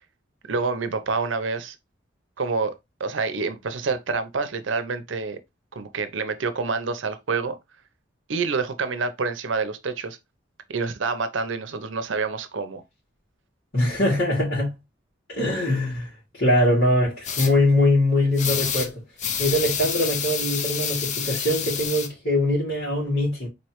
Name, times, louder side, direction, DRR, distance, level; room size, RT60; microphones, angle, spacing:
voice 1, 0.5-1.8 2.4-5.4 5.7-7.6 8.3-10.2 10.7-12.8, right 4 dB, 85° right, 0.7 m, -27 dB
voice 2, 13.7-14.7 15.3-16.1 16.4-18.9 19.4-23.5, left 1 dB, 75° left, 2.4 m, -22 dB
sound 1, 17.2-17.5 18.4-18.9 19.2-22.1, left 7 dB, 40° left, 0.5 m, -28 dB
4.2 x 3.2 x 3.0 m
head